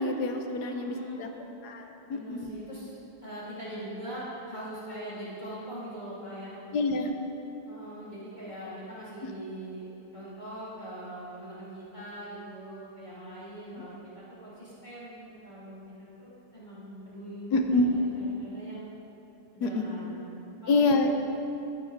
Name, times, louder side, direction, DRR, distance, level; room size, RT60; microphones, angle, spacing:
voice 1, 0.0-1.3 1.6-2.5 6.7-7.1 9.2-9.3 17.5-17.9 19.6-19.8 20.7-21.1, left 2 dB, 65° left, 5 dB, 1.4 m, -27 dB
voice 2, 0.6-1.5 2.1-2.9 3.2-6.6 7.6-9.9 10.1-18.9 19.5-20.3 20.6-21.1, right 1 dB, 25° left, -9 dB, 2.8 m, -42 dB
12.0 x 11.0 x 4.0 m, 2.9 s
omnidirectional pair, 2.1 m